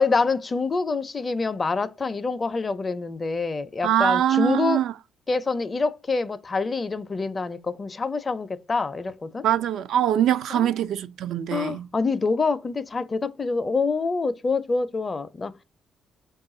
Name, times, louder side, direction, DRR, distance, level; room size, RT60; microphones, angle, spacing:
voice 1, 0.0-4.8 5.3-9.5 10.5-10.7 11.5-15.6, left 4 dB, 30° left, 0.5 m, -26 dB
voice 2, 3.8-4.9 9.4-11.9, right 11 dB, 75° right, 0.3 m, -23 dB
5.3 x 2.4 x 3.7 m
cardioid pair, 90°, 0 cm